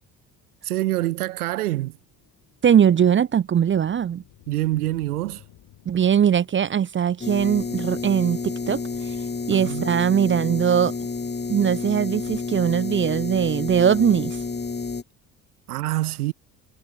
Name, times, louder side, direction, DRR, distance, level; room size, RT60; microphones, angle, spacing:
voice 1, 0.6-2.0 4.5-5.4 9.5-9.9 15.7-16.3, right 17 dB, 80° right, 0.8 m, -26 dB
sound 1, 1.8-7.3, left 15 dB, 60° left, 5.2 m, -54 dB
voice 2, 2.6-4.2 5.9-9.2 9.5-10.9 11.5-14.4, right 8 dB, 25° right, 0.6 m, -20 dB
sound 2, 7.2-15.0, left 4 dB, 25° left, 2.4 m, -30 dB
hypercardioid pair, 55°, 44 cm